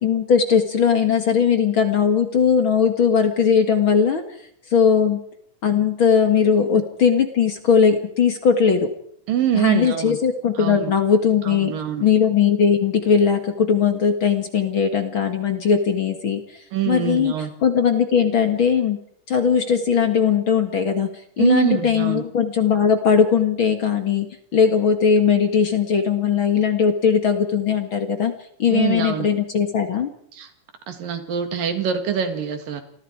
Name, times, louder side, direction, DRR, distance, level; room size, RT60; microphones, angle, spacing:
voice 1, 0.0-4.2 4.7-5.2 5.6-8.9 9.5-11.7 12.0-16.4 16.9-17.3 17.6-19.0 19.3-21.1 21.4-24.3 24.5-28.3 28.6-30.1, left 7 dB, 45° left, 7 dB, 2.1 m, -19 dB
voice 2, 9.3-10.2 10.6-10.9 11.5-12.1 16.7-17.5 21.4-22.2 28.7-29.3 30.3-30.5 30.9-32.8, right 9 dB, 90° right, 7 dB, 3.9 m, -24 dB
29.0 x 21.0 x 4.8 m, 0.66 s
omnidirectional pair, 3.8 m